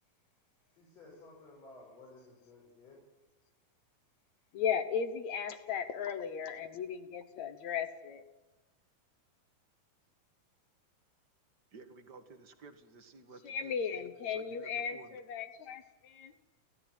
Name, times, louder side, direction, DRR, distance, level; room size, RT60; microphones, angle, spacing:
voice 1, 0.7-3.0, left 2 dB, 45° left, -3 dB, 6.9 m, -55 dB
voice 2, 4.5-8.2 13.4-15.8, left 7 dB, 65° left, 11 dB, 2.1 m, -36 dB
voice 3, 11.7-15.2, right 4 dB, 40° right, 8 dB, 1.8 m, -54 dB
29.5 x 13.5 x 9.3 m, 1.1 s
omnidirectional pair, 4.0 m